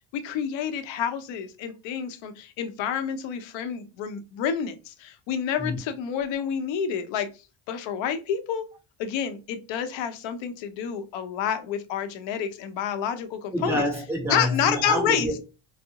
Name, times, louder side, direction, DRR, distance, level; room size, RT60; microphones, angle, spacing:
voice 1, 0.1-7.3 7.7-8.7 9.0-13.8 14.3-15.3, left 8 dB, 65° left, 0.7 m, -29 dB
voice 2, 13.5-15.4, equal, 5° right, 1.3 m, -27 dB
4.5 x 2.0 x 2.8 m
supercardioid pair, 95°, 49 cm